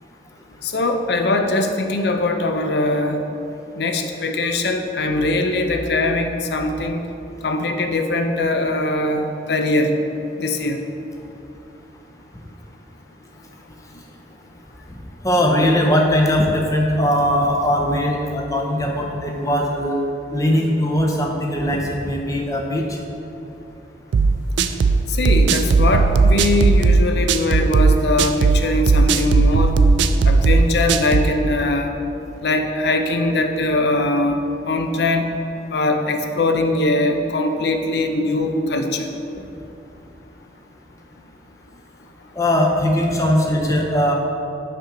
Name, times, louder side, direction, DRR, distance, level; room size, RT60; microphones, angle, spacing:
voice 1, 0.6-3.2 3.8-7.0 7.4-10.0 10.4-10.8 25.1-29.7 30.2-31.9 32.4-34.4 34.7-35.3 35.7-39.1, left 2 dB, 70° left, 5 dB, 0.5 m, -21 dB
voice 2, 15.2-20.0 20.3-23.0 42.3-44.1, equal, 20° left, 0 dB, 0.6 m, -20 dB
sound 1, 24.1-31.3, right 4 dB, 85° right, 0.3 m, -16 dB
5.9 x 5.6 x 3.8 m, 2.8 s
head